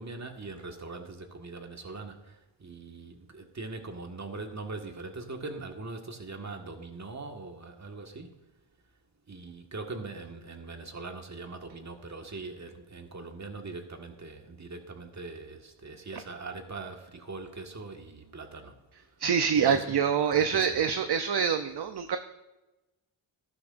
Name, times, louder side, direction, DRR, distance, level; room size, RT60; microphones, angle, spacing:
voice 1, 0.0-8.3 9.3-18.8 19.6-19.9 20.3-20.8 22.0-22.1, right 3 dB, 35° right, 4 dB, 1.7 m, -41 dB
voice 2, 19.2-22.2, right 7 dB, 55° right, 8 dB, 0.7 m, -26 dB
14.5 x 12.0 x 2.6 m, 1.1 s
cardioid pair, 70°, 47 cm